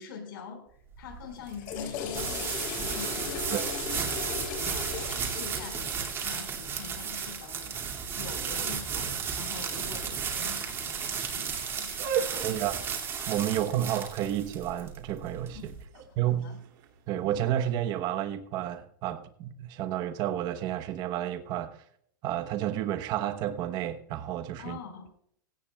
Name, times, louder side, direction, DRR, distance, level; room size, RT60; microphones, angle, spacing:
voice 1, 0.0-12.7 13.4-13.9 15.5-15.6 16.4-16.6 24.6-25.1, left 5 dB, 75° left, 5.4 m, -45 dB
sound 1, 0.9-15.8, right 6 dB, 20° right, 2.5 m, -34 dB
Water / Toilet flush, 1.4-6.6, left 7 dB, 50° left, 5.3 m, -37 dB
sound 2, 11.8-17.8, right 8 dB, 50° right, 2.9 m, -37 dB
voice 2, 12.4-12.8 13.3-15.7 16.2-16.5 17.1-21.8 22.2-24.8, right 11 dB, 35° right, 1.1 m, -31 dB
17.5 x 17.0 x 2.4 m
supercardioid pair, 150°, 12 cm